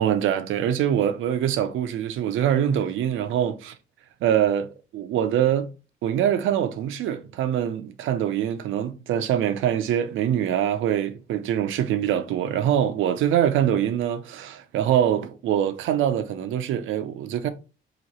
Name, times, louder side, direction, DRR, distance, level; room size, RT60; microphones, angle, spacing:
voice 1, 0.0-3.7 4.2-5.7 6.0-17.5, right 10 dB, 80° right, 0.6 m, -24 dB
3.0 x 2.8 x 4.1 m
cardioid pair, 90°, 20 cm